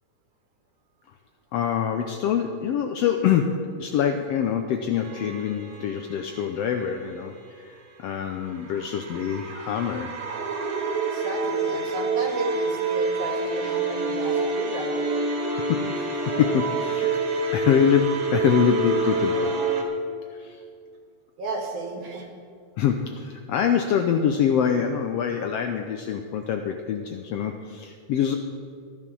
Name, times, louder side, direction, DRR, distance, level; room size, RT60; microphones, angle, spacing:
voice 1, 1.5-10.1 15.7-17.2 17.5-19.5 20.3-20.6 22.8-28.4, left 8 dB, 80° left, 5 dB, 1.4 m, -25 dB
sound 1, 5.0-6.8 8.3-19.8, right 3 dB, 50° right, 2.5 m, -27 dB
voice 2, 11.1-15.1 21.4-22.3, right 3 dB, 80° right, 2 dB, 3.2 m, -33 dB
13.5 x 11.0 x 6.1 m, 2.3 s
omnidirectional pair, 3.5 m